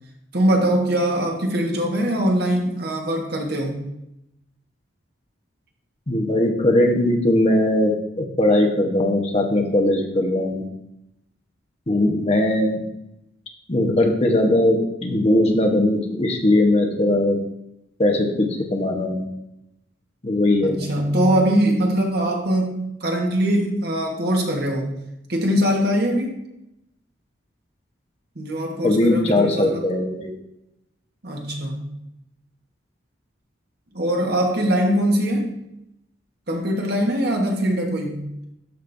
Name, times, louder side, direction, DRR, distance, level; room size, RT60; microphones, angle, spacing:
voice 1, 0.3-3.9 20.6-25.0 25.3-26.4 28.3-29.9 31.2-31.9 33.9-35.6 36.5-38.2, right 1 dB, 55° right, 0 dB, 1.4 m, -22 dB
voice 2, 6.1-10.7 11.9-12.8 13.7-17.4 18.0-19.2 20.2-20.9 28.8-30.3, left 1 dB, 30° left, 2 dB, 1.1 m, -19 dB
13.0 x 5.3 x 2.7 m, 0.84 s
head